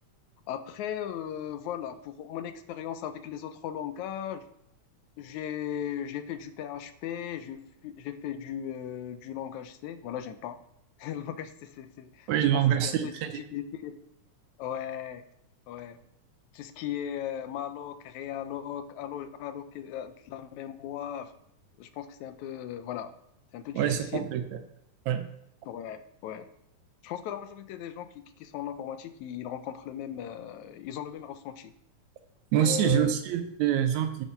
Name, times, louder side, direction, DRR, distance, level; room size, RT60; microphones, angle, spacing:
voice 1, 0.5-4.5 5.2-10.6 11.0-13.9 14.6-15.2 15.7-16.0 16.5-21.3 21.8-23.1 23.5-24.3 25.7-26.5 27.0-31.7 32.5-33.2, left 10 dB, 80° left, 10 dB, 2.0 m, -37 dB
voice 2, 12.3-13.4 23.8-24.4 25.1-25.3 32.5-34.2, right 10 dB, 75° right, 9 dB, 1.9 m, -25 dB
7.5 x 7.0 x 5.6 m, 0.77 s
omnidirectional pair, 3.5 m